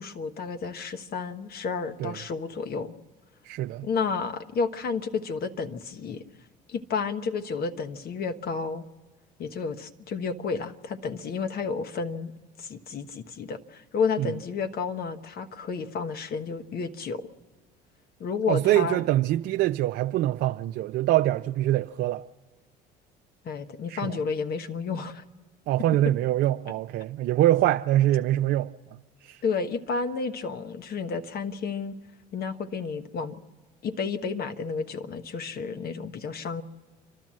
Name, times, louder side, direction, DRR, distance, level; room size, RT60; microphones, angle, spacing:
voice 1, 0.0-2.9 3.8-6.2 6.7-8.8 9.4-12.3 12.6-17.3 18.2-19.0 23.4-25.2 29.4-32.0 32.3-33.3 33.8-36.6, left 5 dB, 50° left, 1.2 m, -31 dB
voice 2, 3.4-3.9 14.2-14.3 18.5-22.2 23.9-24.2 25.7-28.7 29.2-29.4, right 14 dB, 60° right, 0.5 m, -24 dB
29.5 x 12.5 x 7.5 m
hypercardioid pair, 70°, 20 cm